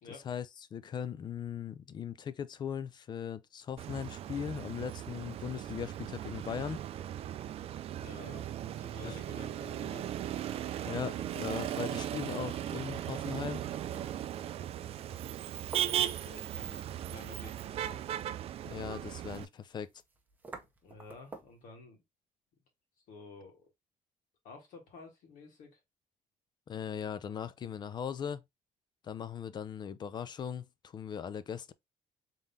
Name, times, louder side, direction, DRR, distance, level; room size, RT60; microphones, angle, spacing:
voice 1, 0.7-6.8 9.0-9.1 10.9-13.6 18.6-19.9 26.7-28.4 29.0-31.7, left 8 dB, 35° left, 0.4 m, -39 dB
Motor vehicle (road), 3.8-19.5, right 11 dB, 45° right, 0.4 m, -37 dB
voice 2, 7.9-10.1 15.8-18.0 20.8-22.0 23.1-23.7 24.4-25.8, left 3 dB, 75° left, 2.1 m, -52 dB
sound 1, 12.2-21.7, right 3 dB, 15° right, 0.8 m, -54 dB
3.7 x 3.7 x 2.7 m
cardioid pair, 155°, 13 cm